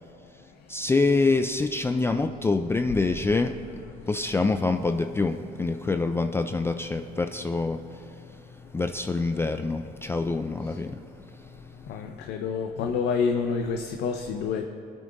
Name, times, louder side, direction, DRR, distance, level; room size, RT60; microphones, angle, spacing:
voice 1, 0.7-12.1, left 3 dB, 15° left, 7 dB, 0.3 m, -26 dB
voice 2, 11.9-14.6, left 5 dB, 75° left, 4 dB, 0.7 m, -28 dB
23.0 x 8.7 x 2.6 m, 2.5 s
cardioid pair, 110°, 17 cm